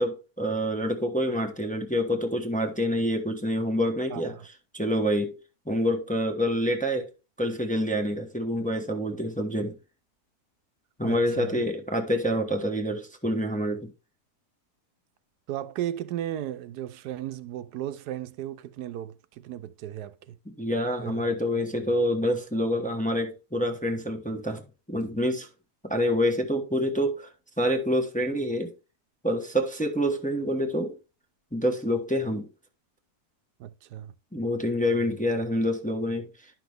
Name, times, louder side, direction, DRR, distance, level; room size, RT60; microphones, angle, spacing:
voice 1, 0.0-4.4 4.7-5.3 5.7-7.1 7.4-9.8 11.0-13.9 20.5-24.6 24.9-25.5 25.8-27.3 27.6-28.7 29.2-31.0 31.5-32.5 34.3-36.5, equal, 5° left, 0.9 m, -27 dB
voice 2, 4.1-4.5 11.0-11.6 15.5-20.4 21.0-21.2 33.6-34.1, right 12 dB, 85° right, 1.2 m, -35 dB
10.5 x 6.0 x 3.4 m
omnidirectional pair, 1.7 m